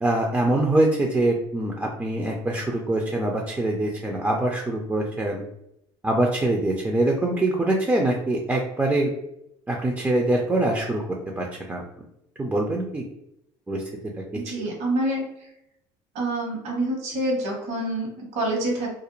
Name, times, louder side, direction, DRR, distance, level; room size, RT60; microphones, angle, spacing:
voice 1, 0.0-5.4 6.0-9.1 9.7-11.0 11.4-11.8 12.4-13.1 13.7-13.8 14.5-14.6, right 1 dB, 15° right, 0 dB, 0.4 m, -24 dB
voice 2, 14.3-15.3 16.1-18.9, right 1 dB, 65° right, -2 dB, 1.1 m, -27 dB
2.4 x 2.0 x 3.0 m, 0.80 s
supercardioid pair, 90°, 13 cm